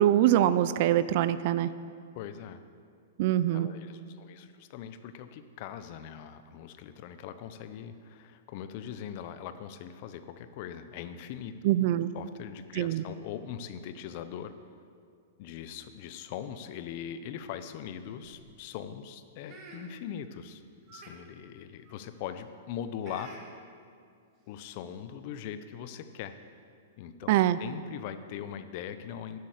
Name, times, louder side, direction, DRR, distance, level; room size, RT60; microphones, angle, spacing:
voice 1, 0.0-1.7 3.2-3.7 11.6-12.1 12.8-13.0 27.3-27.6, right 12 dB, 55° right, 15 dB, 0.4 m, -24 dB
voice 2, 2.1-2.6 3.5-11.6 12.1-14.5 15.4-20.6 20.9-23.3 24.5-26.3 27.0-29.4, left 9 dB, 50° left, 11 dB, 0.7 m, -41 dB
sound 1, 17.9-18.5 19.4-19.8 20.4-20.5 20.8-21.1 21.8-22.0 23.0-23.4 24.3-24.4 24.7-24.9, right 3 dB, 35° right, 2.2 m, -50 dB
9.6 x 7.8 x 6.5 m, 2.2 s
hypercardioid pair, 130°, 0 cm